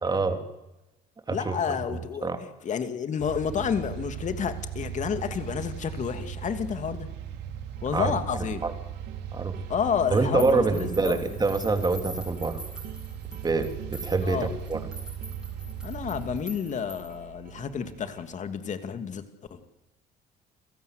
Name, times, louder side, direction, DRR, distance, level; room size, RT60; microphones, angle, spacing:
voice 1, 0.0-0.4 1.3-1.6 1.9-2.4 7.9-8.2 8.6-8.7 9.3-9.6 10.1-12.6 13.4-14.8, right 3 dB, 25° right, 6 dB, 3.4 m, -26 dB
voice 2, 1.3-2.3 2.6-7.1 7.8-8.6 9.7-11.2 14.2-14.5 15.8-19.2 19.5-19.6, left 7 dB, 45° left, 9 dB, 2.6 m, -30 dB
sound 1, 3.2-16.4, right 9 dB, 85° right, 2.8 m, -38 dB
sound 2, 7.8-18.3, right 8 dB, 60° right, 2.7 m, -46 dB
sound 3, 10.4-17.2, equal, 5° right, 6.5 m, -44 dB
29.5 x 17.0 x 8.1 m, 0.97 s
cardioid pair, 110°, 17 cm